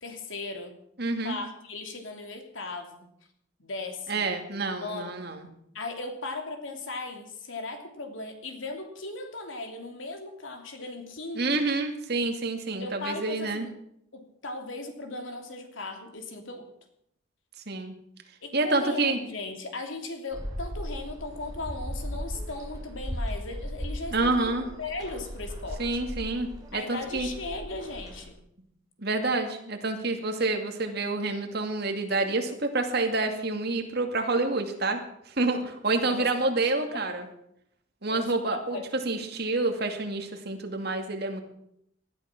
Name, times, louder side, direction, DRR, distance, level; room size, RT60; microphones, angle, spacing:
voice 1, 0.0-0.8 1.2-3.1 3.6-4.4 4.7-5.1 5.7-11.6 12.8-13.7 14.1-16.7 18.4-26.0 26.7-28.4 36.0-36.5 36.9-37.3 38.1-38.8, left 2 dB, 80° left, 4 dB, 3.0 m, -37 dB
voice 2, 1.0-1.4 4.1-5.4 11.4-13.7 17.7-17.9 18.5-19.2 24.1-24.7 25.8-27.3 29.0-37.2 38.0-41.4, right 3 dB, 55° right, 4 dB, 2.5 m, -28 dB
sound 1, 20.3-28.3, equal, 20° right, 4.0 m, -37 dB
19.0 x 12.5 x 6.1 m, 0.73 s
head